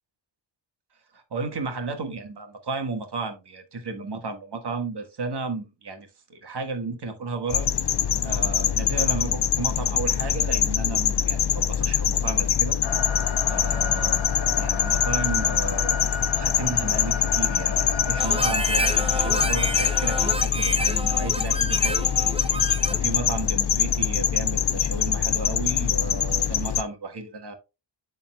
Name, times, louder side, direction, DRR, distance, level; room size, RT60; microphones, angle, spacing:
voice 1, 1.1-7.7 8.2-12.8 13.4-16.0 16.3-22.0 22.9-27.5, right 3 dB, 60° right, 1.5 m, -33 dB
sound 1, 7.5-26.8, left 9 dB, 60° left, 0.6 m, -24 dB
sound 2, 12.8-20.3, left 5 dB, 80° left, 1.1 m, -33 dB
Harmonica, 18.2-23.1, right 1 dB, 15° right, 0.7 m, -30 dB
11.5 x 4.1 x 2.2 m
wide cardioid pair, 105°, 45 cm